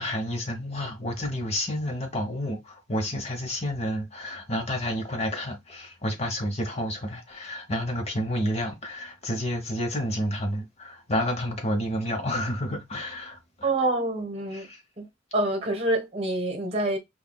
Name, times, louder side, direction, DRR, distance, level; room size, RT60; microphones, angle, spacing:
voice 1, 0.0-13.7 14.5-14.8, equal, 30° left, 1.1 m, -30 dB
voice 2, 13.6-14.7 15.0-15.1 15.3-17.0, right 2 dB, 30° right, 1.3 m, -26 dB
5.6 x 2.4 x 2.3 m
head